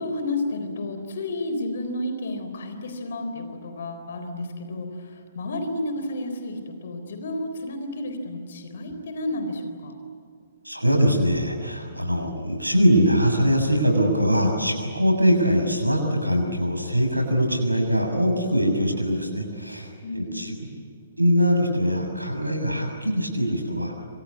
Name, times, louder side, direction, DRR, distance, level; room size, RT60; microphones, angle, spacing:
voice 1, 0.0-9.9 20.0-20.5, left 1 dB, 50° left, 7 dB, 3.9 m, -31 dB
voice 2, 10.6-20.6 21.2-23.9, equal, 85° right, 3 dB, 7.1 m, -22 dB
28.0 x 25.5 x 8.4 m, 2.2 s
figure-of-eight pair, 125°, 0 cm